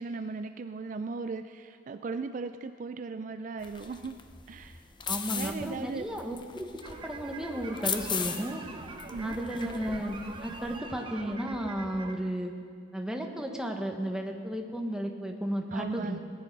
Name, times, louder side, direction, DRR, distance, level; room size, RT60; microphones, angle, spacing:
voice 1, 0.0-4.2 4.5-4.9 5.3-6.0 9.1-9.4 15.7-16.2, right 4 dB, 45° right, 9 dB, 0.4 m, -37 dB
sound 1, 3.6-10.8, left 7 dB, 25° left, 0.7 m, -38 dB
voice 2, 5.1-8.6 9.2-12.5 12.9-16.2, equal, 5° right, 2 dB, 1.1 m, -34 dB
sound 2, 6.8-12.1, right 3 dB, 30° right, 0.9 m, -43 dB
18.5 x 9.9 x 5.3 m, 2.2 s
head